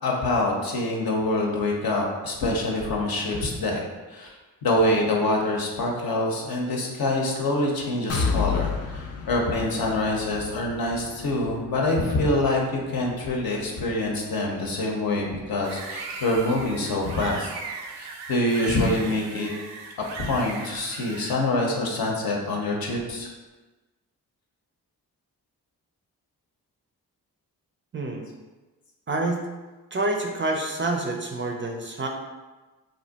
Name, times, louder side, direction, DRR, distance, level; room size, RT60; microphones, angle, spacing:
voice 1, 0.0-3.8 4.1-4.3 4.6-17.5 18.0-19.5 20.2-23.3, left 2 dB, 60° left, -1 dB, 0.8 m, -25 dB
sound 1, 8.1-15.9 16.3-16.4 16.8-16.9, left 5 dB, 40° left, 0.4 m, -33 dB
sound 2, 15.6-21.3, right 4 dB, 85° right, 0.5 m, -38 dB
voice 2, 27.9-28.3 29.1-29.4 29.9-32.1, right 2 dB, 30° right, 2 dB, 0.4 m, -27 dB
2.5 x 2.0 x 3.9 m, 1.2 s
supercardioid pair, 50°, 40 cm